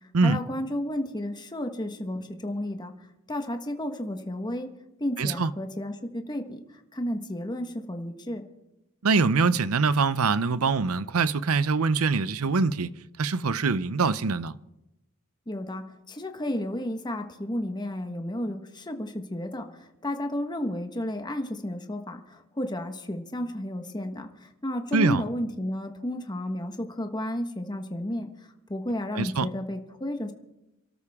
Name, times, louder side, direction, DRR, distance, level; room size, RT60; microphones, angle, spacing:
voice 1, 0.2-2.9 3.3-4.7 5.0-6.6 6.9-8.4 15.5-28.3 28.7-30.3, left 1 dB, 20° left, 1.4 m, -32 dB
voice 2, 5.2-5.5 9.0-12.9 13.2-14.5 24.9-25.2 29.1-29.5, right 4 dB, 90° right, 0.7 m, -24 dB
28.0 x 13.0 x 3.6 m
head